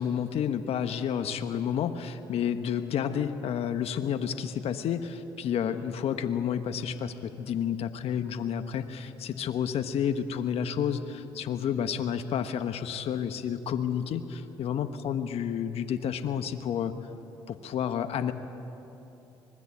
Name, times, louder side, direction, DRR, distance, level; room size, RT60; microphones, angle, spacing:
voice 1, 0.0-16.9 17.5-18.3, left 8 dB, 65° left, 9 dB, 1.2 m, -30 dB
24.5 x 20.5 x 8.6 m, 2.9 s
supercardioid pair, 60°, 11 cm